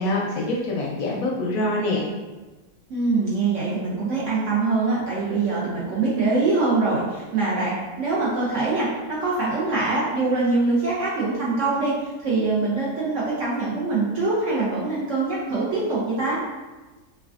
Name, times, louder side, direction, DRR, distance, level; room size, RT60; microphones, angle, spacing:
voice 1, 0.0-2.1, left 1 dB, 70° left, -3 dB, 0.9 m, -25 dB
voice 2, 2.9-16.4, right 3 dB, 65° right, -7 dB, 0.8 m, -24 dB
3.2 x 2.3 x 2.4 m, 1.2 s
omnidirectional pair, 1.7 m